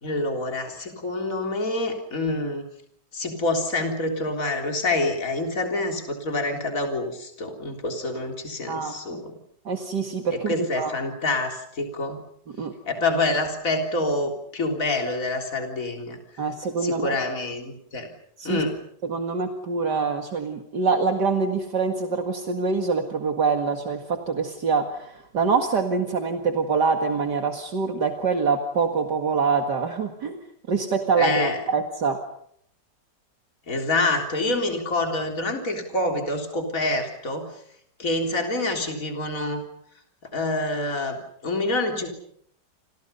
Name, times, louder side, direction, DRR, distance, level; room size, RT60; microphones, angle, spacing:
voice 1, 0.0-2.6 3.1-9.3 10.3-12.2 12.9-16.2 16.8-18.1 18.4-18.8 31.2-31.6 33.7-37.5 38.0-39.6 40.3-42.1, left 2 dB, 45° left, 3 dB, 4.1 m, -27 dB
voice 2, 8.7-9.2 9.7-10.9 12.6-12.7 16.4-17.1 18.4-18.6 19.0-30.4 30.7-32.2, right 5 dB, 65° right, 4 dB, 2.5 m, -25 dB
29.5 x 28.0 x 5.6 m, 0.69 s
omnidirectional pair, 2.0 m